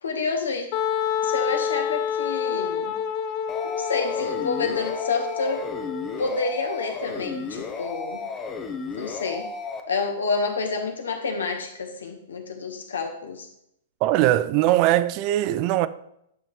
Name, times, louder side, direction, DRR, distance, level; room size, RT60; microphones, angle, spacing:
voice 1, 0.0-0.7 1.2-2.9 3.6-5.7 6.2-8.2 8.9-9.5 9.9-13.5, left 4 dB, 75° left, 1.3 m, -28 dB
Wind instrument woodwind instrument, 0.7-6.3, left 8 dB, 40° left, 0.5 m, -28 dB
sound 1, 3.5-9.8, left 4 dB, 20° left, 0.9 m, -34 dB
voice 2, 14.0-15.9, right 14 dB, 40° right, 0.4 m, -20 dB
9.3 x 5.6 x 3.2 m
figure-of-eight pair, 110°, 0 cm